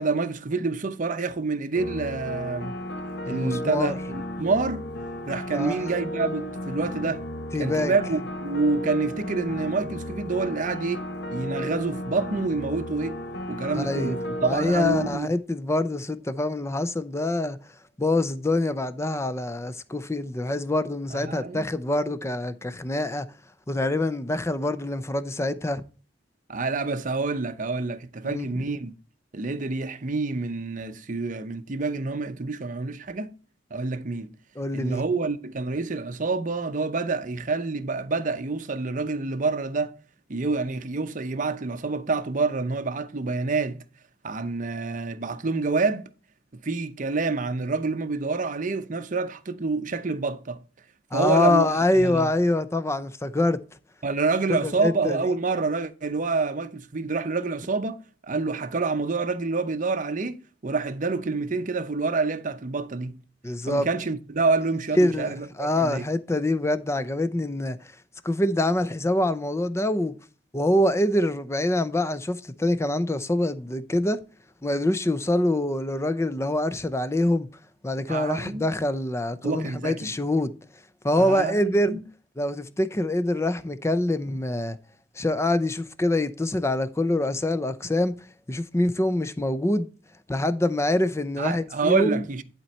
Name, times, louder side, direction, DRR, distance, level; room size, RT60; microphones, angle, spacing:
voice 1, 0.0-2.7 3.3-4.8 5.2-7.3 7.6-13.2 13.5-15.3 21.1-21.6 26.5-28.9 29.3-33.3 33.7-34.3 34.7-39.9 40.3-43.8 44.2-46.1 46.6-50.6 51.1-51.7 51.9-52.3 54.0-63.2 63.6-66.1 78.1-78.6 79.4-80.1 81.2-82.0 91.4-92.4, right 3 dB, 45° right, 0.7 m, -27 dB
sound 1, 1.7-15.2, left 1 dB, 60° left, 1.0 m, -34 dB
voice 2, 3.3-4.0 5.5-5.8 7.5-7.9 13.7-17.6 18.0-23.3 23.7-25.8 28.2-28.6 34.6-35.0 51.1-53.6 54.6-55.2 63.4-63.9 65.0-67.9 68.2-70.1 70.5-74.2 74.6-77.5 77.8-80.5 81.0-82.0 82.4-84.8 85.1-88.1 88.5-89.9 90.3-92.2, left 1 dB, 15° left, 0.6 m, -25 dB
11.0 x 4.4 x 4.2 m
head